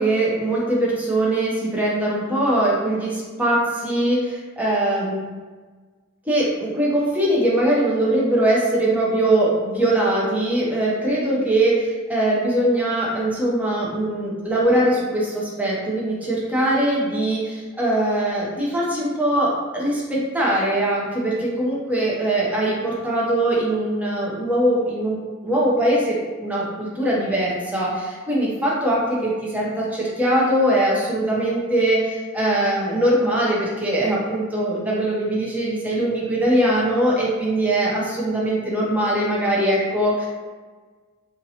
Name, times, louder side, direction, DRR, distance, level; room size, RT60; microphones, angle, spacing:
voice 1, 0.0-5.2 6.3-25.2 25.4-26.1 26.4-40.3, right 1 dB, 10° right, -5 dB, 0.8 m, -21 dB
4.5 x 2.6 x 2.8 m, 1.4 s
head